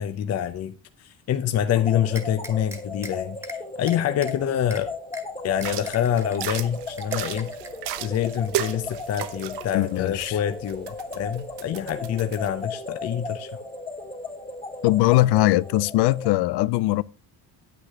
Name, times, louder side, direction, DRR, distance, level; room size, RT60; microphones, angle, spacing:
voice 1, 0.0-4.9 5.4-7.5 8.0-13.6, left 10 dB, 40° left, 0.7 m, -26 dB
sound 1, 1.7-16.3, left 3 dB, 15° left, 1.7 m, -36 dB
sound 2, 2.1-3.1 3.4-3.6 3.9-4.3 4.7-4.8 5.1-5.2 5.6-6.6 7.0-7.7, right 1 dB, 5° right, 1.6 m, -39 dB
sound 3, 5.5-12.5, right 12 dB, 85° right, 1.0 m, -35 dB
voice 2, 9.7-10.4 14.8-17.0, left 17 dB, 85° left, 0.5 m, -20 dB
9.6 x 9.3 x 3.5 m
cardioid pair, 165°, 39 cm